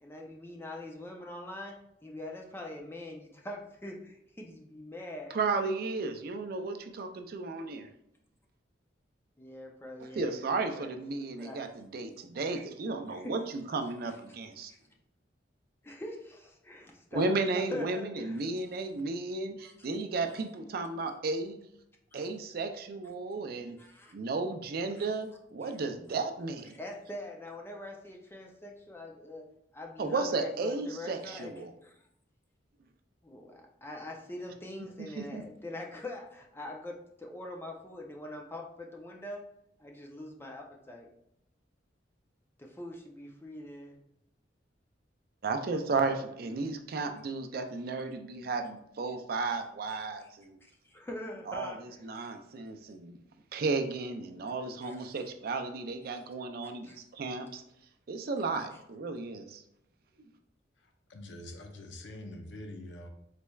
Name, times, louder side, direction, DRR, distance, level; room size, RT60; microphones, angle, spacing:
voice 1, 0.0-1.7 2.0-5.3 9.4-10.9 11.4-11.6 13.1-13.3 14.7-14.8 15.8-18.4 19.6-19.7 22.1-22.2 23.8-24.1 25.0-25.1 25.6-25.7 26.8-29.4 29.7-32.0 33.2-39.4 39.8-41.1 42.6-44.0 46.5-46.7 50.2-50.3 50.6-51.8 52.1-52.3 54.8-55.0 56.2-56.3 56.8-57.0, left 1 dB, 15° left, 1 dB, 0.4 m, -43 dB
voice 2, 5.3-7.9 10.0-14.7 17.1-21.6 22.1-23.8 24.1-26.8 30.0-31.7 35.2-35.4 45.4-50.6 51.5-53.2 53.5-57.6 58.1-59.6, right 3 dB, 55° right, 6 dB, 0.4 m, -34 dB
voice 3, 61.1-63.1, left 1 dB, 80° left, 4 dB, 0.6 m, -44 dB
4.1 x 3.2 x 2.3 m, 0.77 s
head